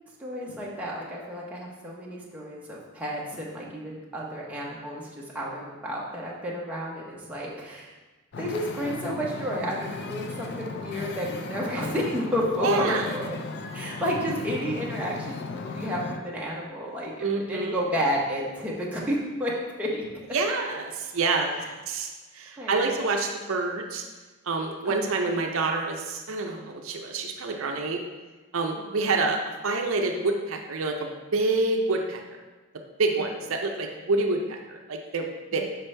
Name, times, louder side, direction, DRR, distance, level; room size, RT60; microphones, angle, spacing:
voice 1, 0.2-5.1 5.3-7.9 8.4-13.3 13.7-20.1 21.6-21.7 22.6-22.9 24.8-25.1 35.5-35.6, equal, 5° right, -5 dB, 0.8 m, -31 dB
Wind / Ocean, 8.3-16.2, left 3 dB, 50° left, 0.4 m, -36 dB
voice 2, 12.6-13.1 17.2-17.8 20.3-21.6 21.9-24.0 24.5-28.0 28.5-32.2 33.0-35.6, right 3 dB, 65° right, 2 dB, 0.5 m, -27 dB
6.1 x 5.2 x 3.3 m, 1.2 s
head